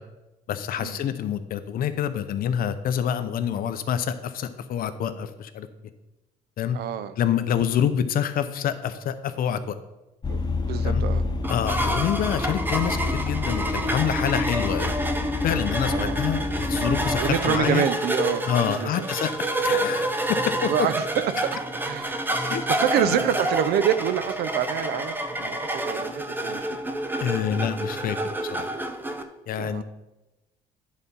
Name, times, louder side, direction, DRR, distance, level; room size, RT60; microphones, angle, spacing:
voice 1, 0.5-5.7 6.6-6.8 7.2-9.8 10.8-11.0 11.5-14.9 15.4-17.8 18.5-19.3 19.6-20.7 22.4-22.6 22.9-23.1 27.2-28.7 29.5-29.8, left 9 dB, 60° left, 11 dB, 0.7 m, -27 dB
voice 2, 6.7-7.1 10.3-10.4 10.7-11.2 15.9-16.2 17.2-19.1 20.7-21.3 21.8-22.2 22.7-26.7 29.6-29.8, right 9 dB, 70° right, 13 dB, 0.6 m, -27 dB
Vehicle, 10.2-17.6, left 3 dB, 25° left, 0.7 m, -29 dB
sound 1, 11.4-29.2, right 1 dB, 10° right, 0.7 m, -28 dB
9.9 x 4.2 x 5.4 m, 0.99 s
cardioid pair, 110°, 17 cm